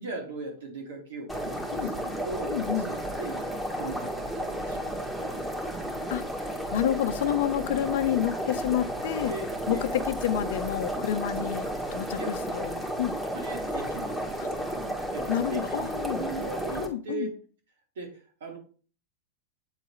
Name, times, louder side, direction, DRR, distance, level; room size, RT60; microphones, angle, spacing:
voice 1, 0.0-6.0 6.8-7.1 8.6-8.9 9.3-10.0 11.3-11.4 12.2-12.3 13.3-17.3 18.0-18.6, right 3 dB, 80° right, 2.4 m, -40 dB
sound 1, 1.3-16.9, equal, 5° right, 1.6 m, -33 dB
voice 2, 2.5-2.9 6.1-9.3 9.7-12.7 13.0-13.2 15.3-16.2 16.8-17.3, left 11 dB, 70° left, 0.7 m, -29 dB
8.2 x 4.0 x 3.2 m
hypercardioid pair, 120°, 0 cm